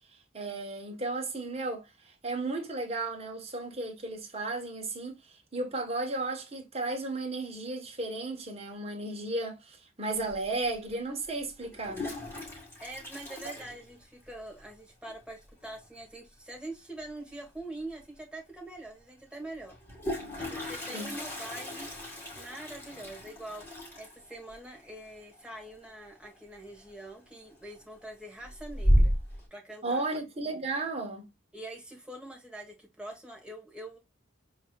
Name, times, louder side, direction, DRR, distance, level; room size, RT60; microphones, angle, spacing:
voice 1, 0.3-12.1 20.9-21.1 29.8-31.3, right 2 dB, 30° right, 1.2 m, -34 dB
Toilet flush, 10.3-10.4 11.6-14.4 14.7-14.8 15.1-15.2 15.4-15.8 17.6-17.7 18.0-18.1 19.6-26.3 26.6-27.1 27.5-28.0 28.4-29.4, equal, 10° left, 2.0 m, -32 dB
voice 2, 12.8-19.8 20.5-21.9 22.4-29.1 29.5-30.0 31.5-34.0, right 1 dB, 5° right, 1.4 m, -44 dB
7.1 x 2.8 x 2.4 m
head